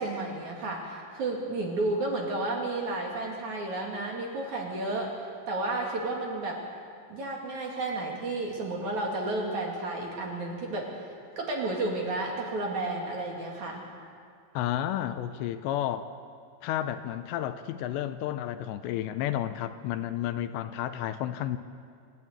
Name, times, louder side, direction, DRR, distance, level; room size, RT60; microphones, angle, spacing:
voice 1, 0.0-5.2 5.5-6.6 7.1-11.0 11.4-13.9, right 2 dB, 50° right, -1 dB, 3.2 m, -32 dB
voice 2, 14.5-16.1 16.6-21.6, left 11 dB, 80° left, 10 dB, 2.8 m, -31 dB
26.5 x 13.0 x 8.7 m, 2.2 s
omnidirectional pair, 5.2 m